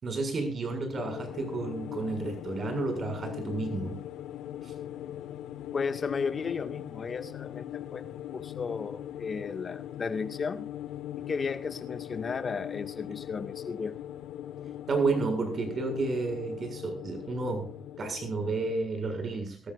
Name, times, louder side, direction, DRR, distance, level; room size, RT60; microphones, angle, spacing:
voice 1, 0.0-4.0 4.6-4.7 14.9-19.7, right 3 dB, 45° right, 7.0 m, -31 dB
sound 1, 0.9-18.7, left 12 dB, 90° left, 1.6 m, -40 dB
voice 2, 5.7-10.7 11.3-13.9, left 5 dB, 40° left, 2.1 m, -34 dB
23.5 x 14.0 x 2.6 m
cardioid pair, 90°, 0 cm